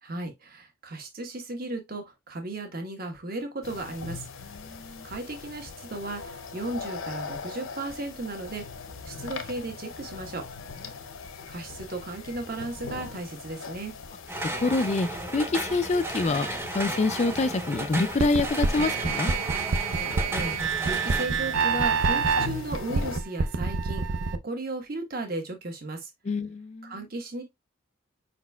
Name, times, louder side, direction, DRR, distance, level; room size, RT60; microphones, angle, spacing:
voice 1, 0.0-4.3 5.0-8.7 9.0-10.4 11.5-14.0 20.3-26.1 26.8-27.4, right 2 dB, 45° right, 1.2 m, -35 dB
sound 1, 3.6-23.2, left 4 dB, 85° left, 0.7 m, -41 dB
voice 2, 4.4-5.1 14.6-15.1 15.3-19.3 26.3-27.1, left 3 dB, 35° left, 0.3 m, -26 dB
sound 2, 14.3-21.3, right 1 dB, 10° right, 0.7 m, -34 dB
sound 3, 18.2-24.4, right 5 dB, 75° right, 0.5 m, -27 dB
5.1 x 4.1 x 2.3 m
head